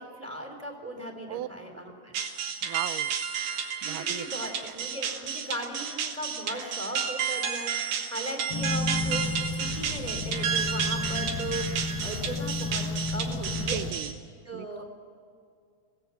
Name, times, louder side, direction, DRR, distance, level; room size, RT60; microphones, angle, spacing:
voice 1, 0.0-2.2 3.8-13.8 14.4-14.8, right 1 dB, 5° right, 3 dB, 3.0 m, -38 dB
sound 1, 2.1-14.1, right 7 dB, 55° right, 2.2 m, -31 dB
voice 2, 2.6-3.1 3.5-4.3 4.6-4.7 13.6-14.2 14.5-14.8, right 14 dB, 75° right, 14 dB, 2.1 m, -37 dB
sound 2, 8.5-13.9, left 3 dB, 85° left, 3.3 m, -32 dB
24.5 x 17.5 x 7.2 m, 2.3 s
omnidirectional pair, 4.2 m